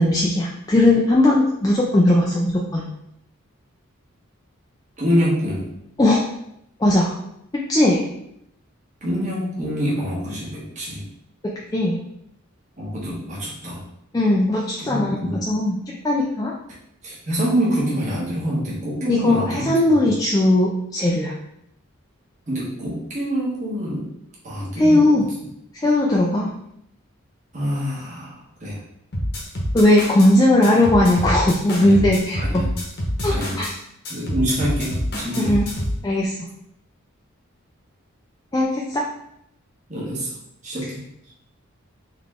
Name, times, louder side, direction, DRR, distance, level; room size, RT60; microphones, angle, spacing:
voice 1, 0.0-2.8 6.0-6.2 6.8-7.1 7.7-8.0 11.7-12.0 14.1-15.8 16.0-16.5 19.1-21.3 24.8-25.2 25.7-26.5 29.7-32.6 33.2-33.7 35.3-35.7 36.0-36.4 38.5-39.1, left 1 dB, 15° left, -3 dB, 0.4 m, -18 dB
voice 2, 5.0-5.7 9.0-11.1 12.8-13.8 14.8-15.4 17.0-19.9 22.5-24.1 24.4-25.2 27.5-28.8 31.8-32.0 32.3-32.7 33.3-33.6 34.1-35.5 39.9-40.3 40.6-41.0, equal, 35° right, -6 dB, 1.3 m, -26 dB
sound 1, 29.1-30.3 30.6-33.7 34.0-36.0, equal, 50° left, 1.0 m, -26 dB
3.9 x 3.2 x 3.6 m, 0.76 s
head